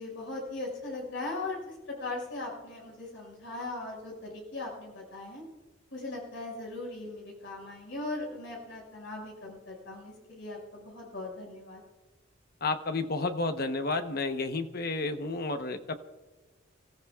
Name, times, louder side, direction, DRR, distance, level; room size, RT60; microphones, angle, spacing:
voice 1, 0.0-5.4 5.9-11.8, left 2 dB, 70° left, -3 dB, 5.8 m, -39 dB
voice 2, 12.6-15.9, left 3 dB, 50° left, 8 dB, 1.0 m, -31 dB
30.0 x 14.5 x 2.4 m, 1.2 s
head